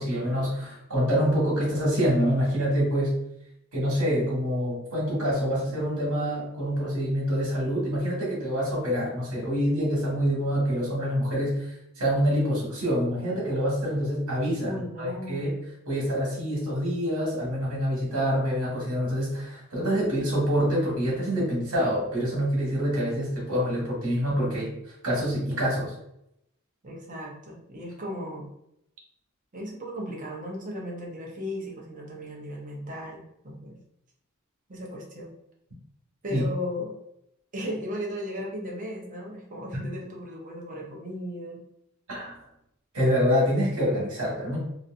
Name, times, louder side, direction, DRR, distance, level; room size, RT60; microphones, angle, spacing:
voice 1, 0.0-3.1 3.7-14.7 15.0-15.5 15.9-25.9 36.3-36.4 39.7-39.8 42.1-42.4 42.9-44.6, equal, 80° right, -5 dB, 1.4 m, -26 dB
voice 2, 14.6-15.5 26.8-28.5 29.5-33.8 34.7-35.3 36.2-37.0 37.5-41.6, equal, 35° right, -2 dB, 0.7 m, -36 dB
2.9 x 2.6 x 2.5 m, 0.78 s
head